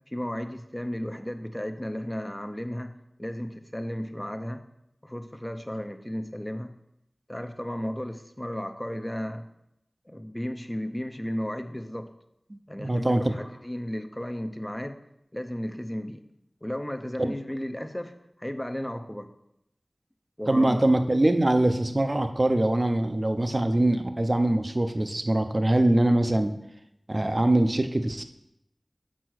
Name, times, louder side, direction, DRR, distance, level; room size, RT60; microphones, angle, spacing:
voice 1, 0.1-2.9 3.2-4.6 5.0-6.7 7.3-9.5 10.1-12.1 12.7-15.0 15.3-16.2 16.6-18.1 18.4-19.3 20.4-20.8, equal, 15° left, 7 dB, 0.6 m, -34 dB
voice 2, 12.8-13.3 17.2-17.3 20.5-26.5 27.1-28.2, right 1 dB, 40° right, 8 dB, 0.6 m, -23 dB
6.2 x 4.6 x 6.3 m, 0.80 s
wide cardioid pair, 50°, 0 cm